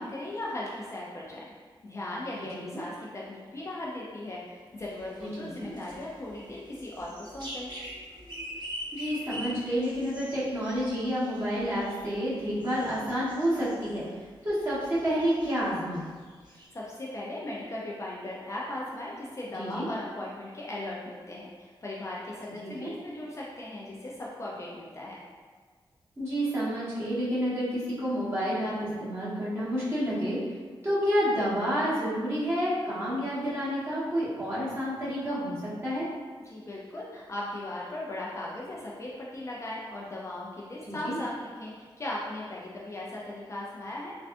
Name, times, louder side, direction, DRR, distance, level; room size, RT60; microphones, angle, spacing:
voice 1, 0.0-1.5 1.8-7.7 16.4-25.2 36.4-44.2, left 1 dB, 35° left, -5 dB, 0.4 m, -38 dB
sound 1, 4.8-14.1 14.4-15.6 15.9-16.0 16.3-16.7, equal, 55° right, 0.8 m, -44 dB
voice 2, 8.9-14.0 14.4-16.1 19.6-19.9 22.6-22.9 26.2-30.4 30.8-36.1 40.9-41.2, equal, 25° right, -11 dB, 1.2 m, -29 dB
3.4 x 2.3 x 2.5 m, 1.5 s
wide cardioid pair, 125°, 9 cm